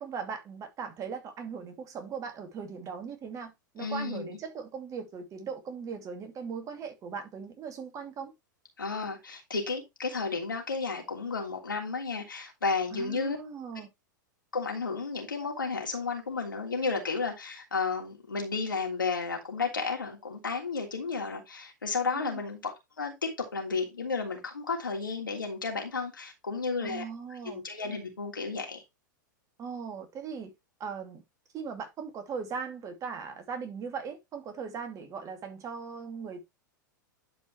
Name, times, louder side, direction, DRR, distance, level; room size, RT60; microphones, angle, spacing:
voice 1, 0.0-8.3 12.9-13.9 22.1-22.4 26.8-27.6 29.6-30.5 30.8-31.2 31.5-36.4, right 6 dB, 30° right, 2.6 m, -39 dB
voice 2, 3.8-4.4 8.8-13.4 14.5-27.0 27.4-28.8, left 4 dB, 85° left, 3.1 m, -32 dB
11.5 x 5.1 x 3.2 m
figure-of-eight pair, 95°, 11 cm